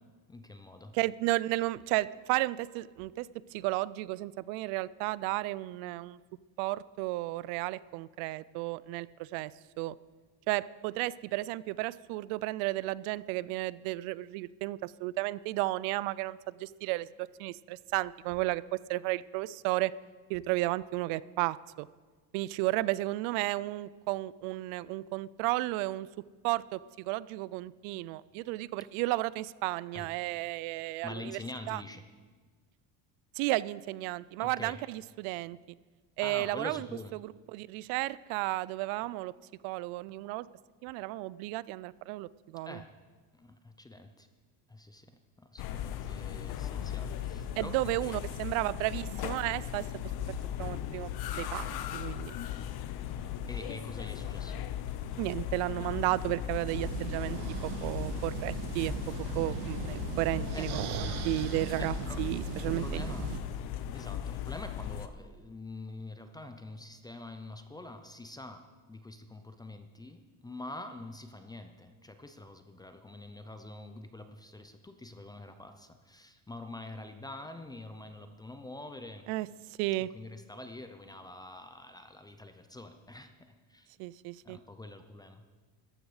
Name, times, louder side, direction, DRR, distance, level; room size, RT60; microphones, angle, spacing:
voice 1, 0.3-1.0 29.9-30.1 31.0-32.0 34.4-34.8 36.2-37.1 42.6-42.9 43.3-44.3 44.7-45.1 45.4-48.1 53.5-54.6 60.5-60.7 61.8-62.2 62.6-63.4 63.9-68.6 68.9-79.3 80.1-83.3 83.7-83.9 84.4-85.4, left 2 dB, 10° left, 7 dB, 0.4 m, -45 dB
voice 2, 0.9-6.2 6.6-9.5 9.8-10.0 10.5-17.1 17.4-19.9 20.3-21.9 22.3-26.1 26.4-31.4 31.7-31.8 33.4-35.6 36.2-36.9 37.2-39.3 39.6-40.5 40.8-42.8 47.6-49.9 50.6-51.1 51.4-52.3 55.2-58.9 59.4-63.0 79.3-80.1 84.0-84.6, right 19 dB, 80° right, 20 dB, 0.5 m, -33 dB
sound 1, 45.6-65.1, left 10 dB, 50° left, 0.8 m, -37 dB
sound 2, 56.7-63.4, right 9 dB, 50° right, 0.9 m, -38 dB
14.0 x 11.5 x 4.9 m, 1.4 s
cardioid pair, 150°, 49 cm